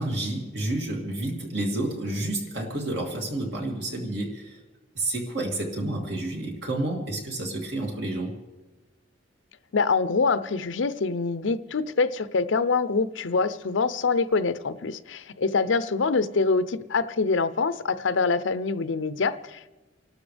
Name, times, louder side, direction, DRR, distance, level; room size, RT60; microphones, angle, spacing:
voice 1, 0.0-4.6 4.9-8.4, right 1 dB, 60° right, 0 dB, 2.8 m, -30 dB
voice 2, 9.7-19.7, left 4 dB, 80° left, 14 dB, 0.6 m, -25 dB
29.5 x 12.5 x 3.4 m, 1.2 s
head